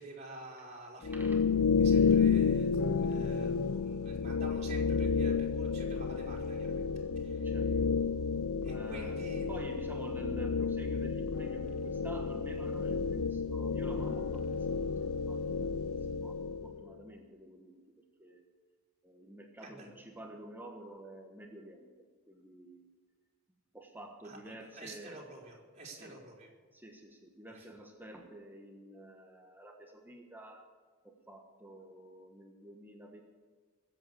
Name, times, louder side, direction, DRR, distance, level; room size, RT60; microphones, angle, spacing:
voice 1, 0.0-1.1 1.8-6.9 7.2-7.5 8.6-9.4 19.6-19.9 24.2-26.5 27.5-27.7, right 2 dB, 30° right, -2 dB, 4.3 m, -49 dB
sound 1, 1.0-16.8, left 5 dB, 70° left, 0.5 m, -31 dB
voice 2, 7.3-7.7 8.7-9.2 9.5-18.5 19.0-22.9 23.7-25.2 25.9-26.2 26.7-30.6 31.0-33.2, right 1 dB, 10° right, 2 dB, 1.3 m, -49 dB
21.0 x 8.4 x 6.8 m, 1.5 s
head